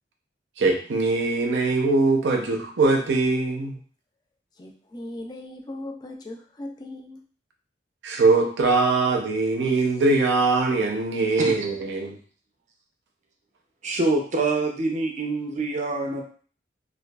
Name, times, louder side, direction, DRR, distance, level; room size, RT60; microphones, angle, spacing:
voice 1, 0.6-3.8 8.0-12.2, right 3 dB, 90° right, 1 dB, 0.6 m, -22 dB
voice 2, 4.6-7.3, left 1 dB, 25° left, 2 dB, 0.3 m, -38 dB
voice 3, 13.8-16.2, right 3 dB, 40° right, 1 dB, 0.5 m, -25 dB
2.6 x 2.3 x 2.2 m, 0.42 s
head